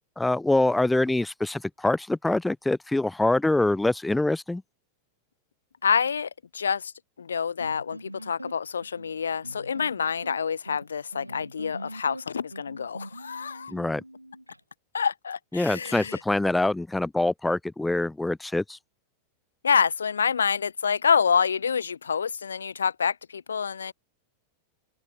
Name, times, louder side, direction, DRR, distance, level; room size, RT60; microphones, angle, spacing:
voice 1, 0.2-4.6 13.7-14.0 15.5-18.8, left 2 dB, 5° left, 1.9 m, -25 dB
voice 2, 5.8-6.9 7.2-13.7 14.9-16.2 19.6-23.9, left 6 dB, 70° left, 4.6 m, -27 dB
sound 1, 7.6-14.6, equal, 90° right, 4.1 m, -43 dB
open air
figure-of-eight pair, 90°, 0 cm